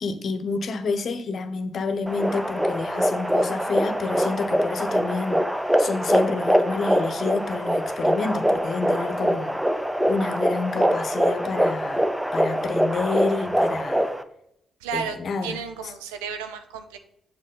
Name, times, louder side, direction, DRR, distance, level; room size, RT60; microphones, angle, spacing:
voice 1, 0.0-5.4 5.8-9.6 10.1-12.0 12.3-14.1 14.9-15.6, left 4 dB, 55° left, 0.9 m, -29 dB
sound 1, 2.1-14.2, equal, 5° right, 0.7 m, -23 dB
voice 2, 14.8-17.0, right 6 dB, 85° right, 0.6 m, -33 dB
7.5 x 5.9 x 3.9 m
hypercardioid pair, 45°, 0 cm